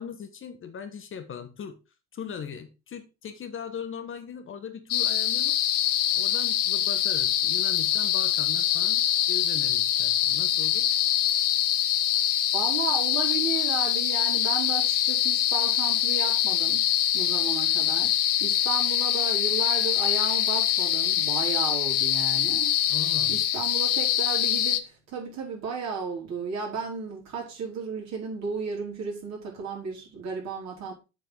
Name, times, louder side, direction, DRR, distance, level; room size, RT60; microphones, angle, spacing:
voice 1, 0.0-1.8 2.1-5.6 6.1-10.9 22.9-23.4, left 7 dB, 35° left, 1.3 m, -39 dB
sound 1, 4.9-24.8, left 11 dB, 75° left, 0.9 m, -24 dB
voice 2, 12.5-16.8 17.1-22.9 23.3-30.9, right 6 dB, 45° right, 4.4 m, -34 dB
7.6 x 5.7 x 5.1 m
figure-of-eight pair, 65°, 36 cm